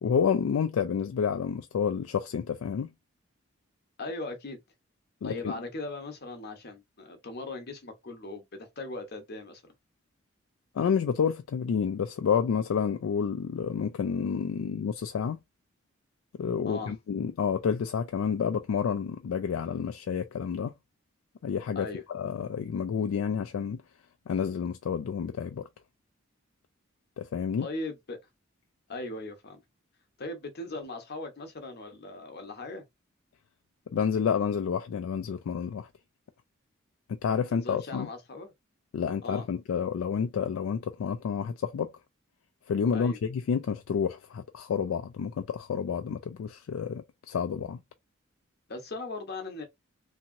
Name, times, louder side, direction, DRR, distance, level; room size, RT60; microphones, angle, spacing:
voice 1, 0.0-2.9 5.2-5.6 10.7-15.4 16.4-20.7 21.4-23.8 24.3-25.6 27.2-27.7 33.9-35.9 37.1-38.1 38.9-41.9 42.7-47.8, left 7 dB, 85° left, 0.3 m, -29 dB
voice 2, 4.0-4.6 5.2-9.7 16.7-16.9 21.7-22.0 27.6-28.2 28.9-29.6 30.2-32.8 37.5-38.5 39.2-39.4 42.9-43.2 48.7-49.6, left 2 dB, 50° left, 0.8 m, -39 dB
2.8 x 2.8 x 2.5 m
head